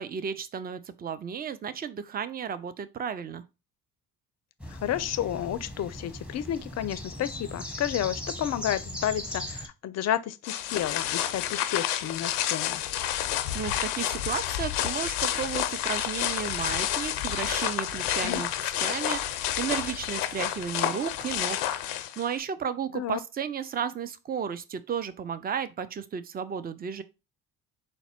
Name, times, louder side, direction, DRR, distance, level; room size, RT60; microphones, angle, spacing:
voice 1, 0.0-3.4 13.5-21.6 22.2-27.0, right 7 dB, 20° right, 0.4 m, -33 dB
sound 1, 4.6-9.7, left 1 dB, 5° right, 0.8 m, -38 dB
voice 2, 4.7-12.8 18.2-18.4 22.9-23.2, left 11 dB, 35° left, 0.5 m, -31 dB
sound 2, 10.4-22.4, left 12 dB, 85° left, 0.6 m, -30 dB
4.1 x 2.1 x 4.3 m
hypercardioid pair, 50°, 46 cm